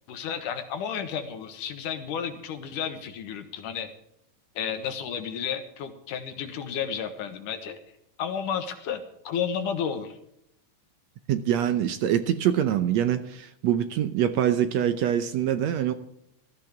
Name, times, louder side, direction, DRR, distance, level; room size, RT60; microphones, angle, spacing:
voice 1, 0.1-3.9 4.6-7.8 8.2-10.2, left 7 dB, 70° left, 8 dB, 2.7 m, -32 dB
voice 2, 11.3-15.9, right 10 dB, 75° right, 9 dB, 1.6 m, -24 dB
18.0 x 13.5 x 3.6 m, 0.75 s
omnidirectional pair, 4.0 m